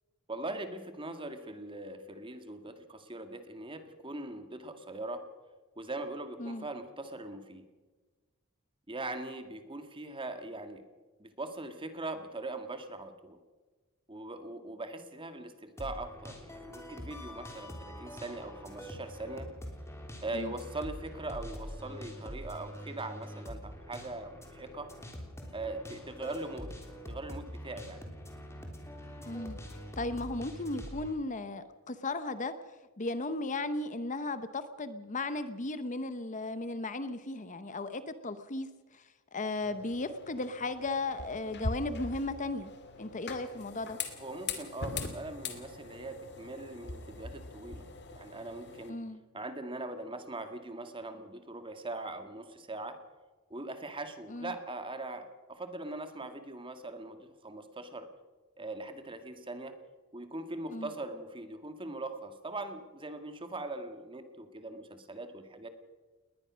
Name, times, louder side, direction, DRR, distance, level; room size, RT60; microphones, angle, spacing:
voice 1, 0.3-5.2 5.8-7.6 8.9-10.8 11.2-13.4 14.1-19.5 20.2-24.9 25.5-26.7 27.1-28.0 44.2-47.9 48.2-49.0 49.3-53.0 53.5-58.1 58.6-59.7 60.1-65.7, right 2 dB, 25° right, 8 dB, 2.0 m, -41 dB
sound 1, 15.8-31.1, equal, 15° left, 3.4 m, -45 dB
voice 2, 29.3-29.6 30.0-32.5 33.0-42.7 43.0-44.0 48.9-49.2 54.3-54.5 60.7-60.9, left 2 dB, 35° left, 12 dB, 0.9 m, -36 dB
sound 2, 39.6-48.9, left 3 dB, 50° left, 2.6 m, -42 dB
20.5 x 20.0 x 6.3 m, 1.3 s
head